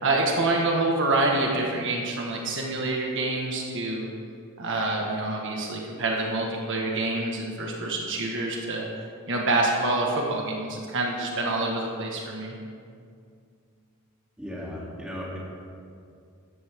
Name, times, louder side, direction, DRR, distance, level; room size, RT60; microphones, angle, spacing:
voice 1, 0.0-4.1 4.6-8.8 9.3-12.5, right 2 dB, 55° right, -1 dB, 1.6 m, -26 dB
voice 2, 14.4-15.4, equal, 5° right, -6 dB, 3.0 m, -36 dB
15.0 x 13.5 x 3.7 m, 2.3 s
head